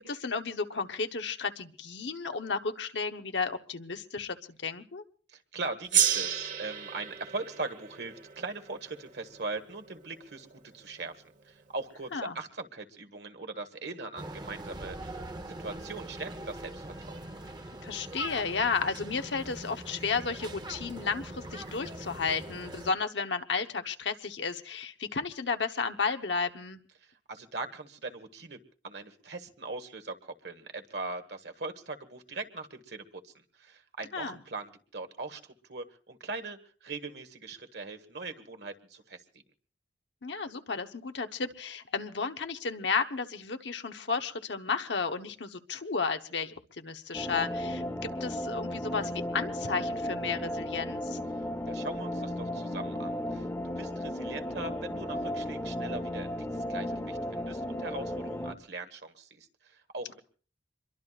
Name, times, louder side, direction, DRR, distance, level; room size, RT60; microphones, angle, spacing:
voice 1, 0.0-4.4 4.6-5.0 12.1-12.3 17.8-26.8 34.1-34.4 40.2-51.2, left 5 dB, 80° left, 7 dB, 1.1 m, -33 dB
voice 2, 5.3-11.1 11.4-17.2 27.3-28.6 28.8-39.2 51.7-60.2, right 3 dB, 65° right, 7 dB, 1.6 m, -40 dB
Gong, 5.9-10.7, right 9 dB, 45° right, 1.3 m, -32 dB
sound 1, 14.2-22.9, right 1 dB, 25° right, 1.0 m, -42 dB
sound 2, 47.1-58.5, left 1 dB, 15° left, 1.0 m, -35 dB
26.0 x 22.5 x 2.5 m, 0.42 s
head